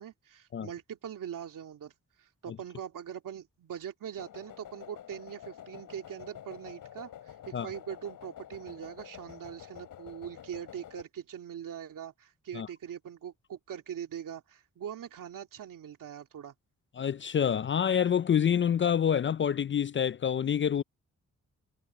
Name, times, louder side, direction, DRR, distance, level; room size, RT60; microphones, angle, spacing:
voice 1, 0.0-16.5, right 9 dB, 80° right, 2.3 m, -42 dB
sound 1, 4.2-11.0, left 10 dB, 85° left, 3.5 m, -48 dB
voice 2, 17.0-20.8, left 8 dB, 40° left, 0.4 m, -27 dB
cardioid pair, 65°, 32 cm